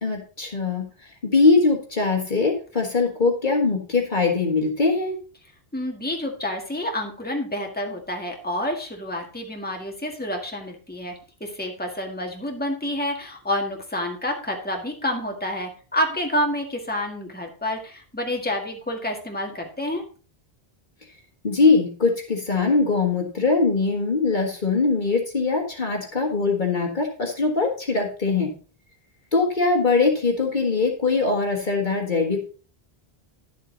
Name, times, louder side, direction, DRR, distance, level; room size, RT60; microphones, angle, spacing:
voice 1, 0.0-5.2 21.4-28.5 29.3-32.4, left 4 dB, 50° left, 2 dB, 1.7 m, -22 dB
voice 2, 5.7-11.1 11.4-20.0, left 1 dB, 10° left, 2 dB, 1.8 m, -28 dB
11.5 x 7.4 x 3.9 m, 0.38 s
omnidirectional pair, 1.0 m